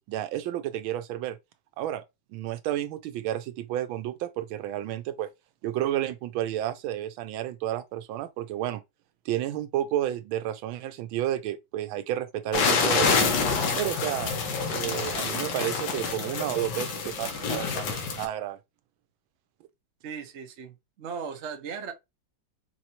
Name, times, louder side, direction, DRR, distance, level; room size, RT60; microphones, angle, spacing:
voice 1, 0.1-1.4 1.8-2.0 2.3-5.3 5.6-8.8 9.2-13.3 13.8-14.4 14.7-18.6, right 12 dB, 80° right, 1.4 m, -31 dB
sound 1, 12.5-18.2, left 4 dB, 65° left, 1.4 m, -27 dB
voice 2, 20.0-21.9, right 6 dB, 55° right, 0.7 m, -37 dB
4.5 x 3.1 x 2.8 m
omnidirectional pair, 2.2 m